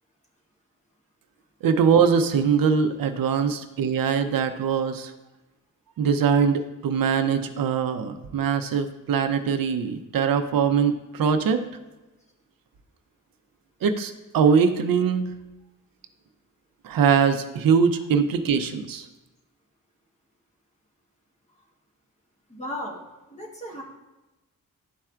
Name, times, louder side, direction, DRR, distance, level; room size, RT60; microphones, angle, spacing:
voice 1, 1.6-5.1 6.0-11.6 13.8-15.2 16.8-19.0, right 6 dB, 80° right, 8 dB, 0.6 m, -22 dB
voice 2, 22.5-23.0 23.3-23.8, left 1 dB, 20° left, -1 dB, 1.1 m, -35 dB
11.5 x 4.4 x 2.4 m, 1.0 s
wide cardioid pair, 170°, 34 cm